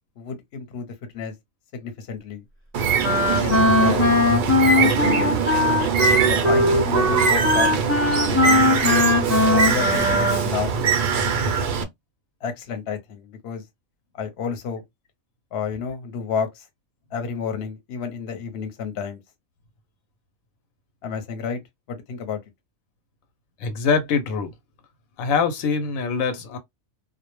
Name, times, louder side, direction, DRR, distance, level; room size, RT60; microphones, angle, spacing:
voice 1, 0.2-0.9 1.1-1.3 1.7-2.4 3.4-4.0 4.7-5.4 6.3-7.7 8.2-8.8 9.5-10.8 11.3-11.5 12.4-13.6 14.1-14.8 15.5-16.7 17.1-19.2 21.0-21.6 21.9-22.4, left 6 dB, 55° left, 0.9 m, -30 dB
Bird, 2.7-11.8, right 5 dB, 65° right, 0.5 m, -22 dB
Wind instrument woodwind instrument, 3.0-10.5, left 2 dB, 15° left, 0.6 m, -20 dB
voice 2, 23.6-24.5 25.2-26.6, left 5 dB, 85° left, 1.0 m, -23 dB
2.3 x 2.0 x 2.9 m
omnidirectional pair, 1.4 m